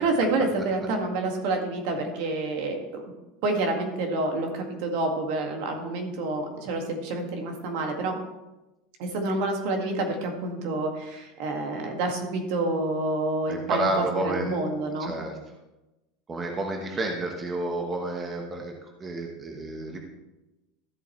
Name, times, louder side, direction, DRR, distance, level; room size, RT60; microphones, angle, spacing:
voice 1, 0.0-3.0 3.4-8.2 9.0-15.1, right 2 dB, 65° right, 3 dB, 1.9 m, -28 dB
voice 2, 13.5-14.5 15.0-15.3 16.3-18.7 19.0-20.0, right 2 dB, 20° right, 2 dB, 1.1 m, -30 dB
13.5 x 7.7 x 3.2 m, 1.0 s
supercardioid pair, 150°, 0 cm